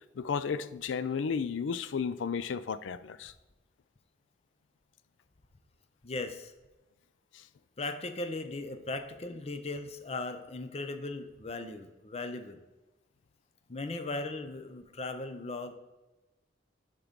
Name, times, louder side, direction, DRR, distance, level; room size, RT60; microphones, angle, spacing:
voice 1, 0.2-3.3, left 6 dB, 85° left, 0.4 m, -33 dB
voice 2, 6.0-6.5 7.8-12.6 13.7-15.8, left 2 dB, 35° left, 0.6 m, -38 dB
10.5 x 3.8 x 5.2 m
head